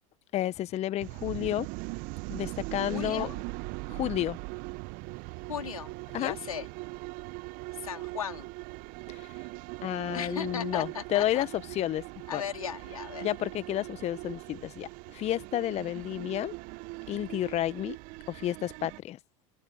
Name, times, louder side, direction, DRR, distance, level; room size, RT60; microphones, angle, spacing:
voice 1, 0.3-1.7 2.3-3.3 3.9-4.4 6.1-6.4 9.1-9.3 9.8-12.0 12.3-12.4 13.2-16.5 17.1-18.0 18.3-19.2, left 13 dB, 40° left, 1.0 m, -31 dB
sound 1, 1.0-19.0, right 26 dB, 50° right, 1.0 m, -40 dB
voice 2, 2.9-3.3 5.5-6.7 7.7-8.5 10.1-11.5 12.3-13.3, left 8 dB, 85° left, 3.8 m, -37 dB
open air
hypercardioid pair, 85°, 18 cm